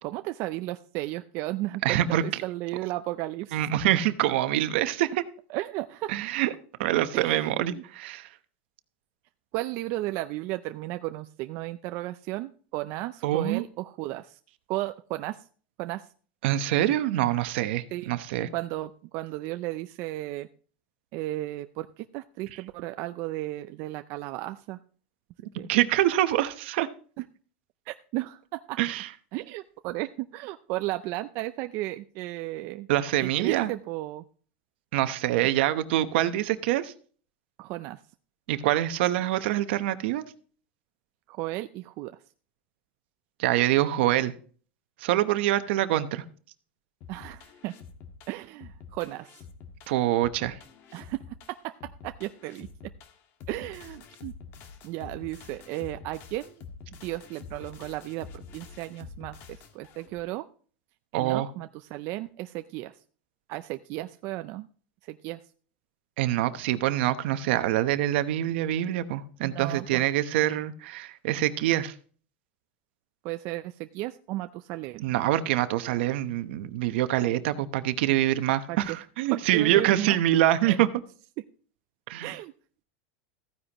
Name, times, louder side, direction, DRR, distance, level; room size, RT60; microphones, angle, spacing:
voice 1, 0.0-3.7 5.5-6.1 7.1-7.8 9.5-14.4 14.7-15.5 15.8-16.1 17.9-18.1 18.5-20.5 21.1-24.8 25.6-25.7 27.2-27.3 27.9-28.8 29.3-32.9 33.2-34.2 37.6-38.0 41.3-42.2 47.1-47.8 48.3-49.5 50.9-51.7 52.0-52.7 53.5-54.3 54.8-56.5 57.0-60.5 61.1-63.0 63.5-64.7 65.0-65.4 69.4-70.0 73.2-75.1 78.7-79.0 79.3-80.2 80.6-80.8 82.2-82.5, right 17 dB, 40° right, 10 dB, 0.4 m, -34 dB
voice 2, 1.8-2.2 3.5-5.2 6.1-6.5 6.8-8.3 13.2-13.6 16.4-18.5 25.7-26.9 28.8-29.1 32.9-33.7 34.9-36.9 38.5-40.2 43.4-44.3 45.0-46.2 49.9-50.6 61.1-61.5 66.2-71.9 75.0-80.9 82.1-82.3, right 13 dB, 65° right, 11 dB, 1.0 m, -25 dB
sound 1, 47.0-60.2, left 5 dB, 40° left, 1.6 m, -47 dB
14.5 x 9.7 x 3.0 m, 0.43 s
supercardioid pair, 160°, 6 cm